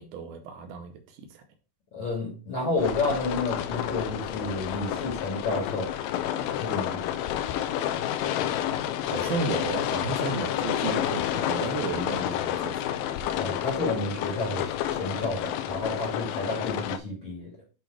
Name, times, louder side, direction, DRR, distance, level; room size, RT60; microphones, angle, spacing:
voice 1, 0.0-1.4 9.0-12.8, right 5 dB, 75° right, 2.6 m, -33 dB
voice 2, 1.9-5.9 6.6-7.2 13.4-17.5, left 2 dB, 45° left, 1.9 m, -30 dB
sound 1, 2.8-17.0, left 11 dB, 80° left, 2.1 m, -30 dB
8.2 x 3.0 x 4.6 m
omnidirectional pair, 4.4 m